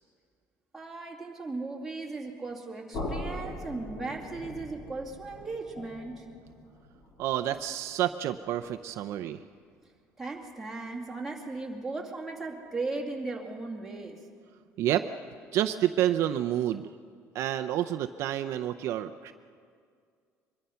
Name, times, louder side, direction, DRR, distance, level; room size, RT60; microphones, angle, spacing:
voice 1, 0.7-6.3 10.2-14.2, right 3 dB, 5° right, -2 dB, 2.4 m, -37 dB
sound 1, 2.9-8.8, left 1 dB, 50° left, 4.3 m, -41 dB
voice 2, 7.2-9.4 14.8-15.1 15.5-16.8 17.3-19.3, right 12 dB, 55° right, 8 dB, 0.6 m, -29 dB
24.0 x 22.5 x 5.7 m, 2.1 s
cardioid pair, 175°, 6 cm